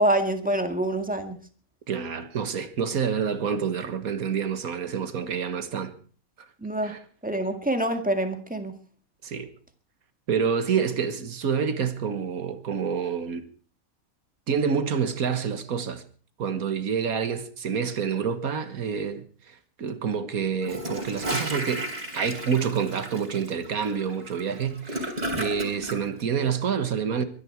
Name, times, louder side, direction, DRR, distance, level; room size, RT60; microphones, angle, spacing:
voice 1, 0.0-1.4 6.6-7.0 7.2-8.7, right 1 dB, 5° right, 1.8 m, -25 dB
voice 2, 1.9-5.9 6.8-7.0 9.2-9.5 10.3-13.5 14.5-16.0 16.4-21.9 22.1-27.2, right 6 dB, 75° right, 1.9 m, -28 dB
Gurgling / Toilet flush, 20.6-26.0, right 1 dB, 30° right, 3.5 m, -33 dB
23.0 x 10.5 x 4.6 m
omnidirectional pair, 1.5 m